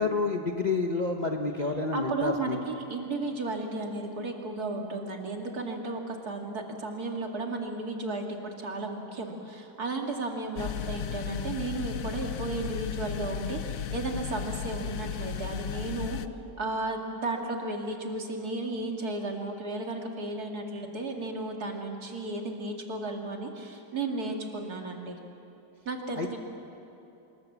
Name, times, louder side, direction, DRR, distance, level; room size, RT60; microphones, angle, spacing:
voice 1, 0.0-2.6 26.2-26.4, left 3 dB, 30° left, 2 dB, 1.0 m, -29 dB
voice 2, 1.9-16.2 16.6-25.2 25.9-26.4, right 2 dB, 60° right, 2 dB, 2.7 m, -34 dB
sound 1, 10.6-16.3, left 8 dB, 60° left, 1.0 m, -35 dB
25.5 x 21.5 x 7.4 m, 2.9 s
omnidirectional pair, 1.9 m